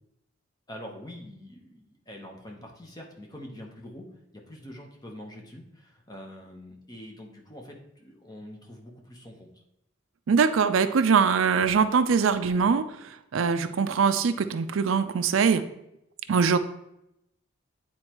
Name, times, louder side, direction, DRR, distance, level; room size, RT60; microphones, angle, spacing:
voice 1, 0.7-4.0 4.3-9.5, left 1 dB, 20° left, 0 dB, 0.9 m, -44 dB
voice 2, 10.3-15.6 16.3-16.6, right 6 dB, 75° right, 10 dB, 0.4 m, -23 dB
8.8 x 4.3 x 3.0 m, 0.82 s
head